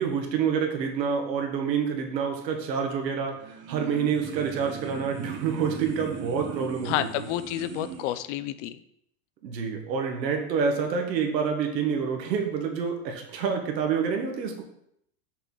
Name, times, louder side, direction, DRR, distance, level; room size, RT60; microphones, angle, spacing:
voice 1, 0.0-6.9 9.4-14.6, right 6 dB, 90° right, 3 dB, 1.7 m, -27 dB
sound 1, 3.3-8.2, right 7 dB, 25° right, 0.5 m, -38 dB
voice 2, 6.8-8.8, left 13 dB, 50° left, 13 dB, 0.5 m, -30 dB
6.6 x 4.7 x 4.1 m, 0.72 s
supercardioid pair, 130°, 49 cm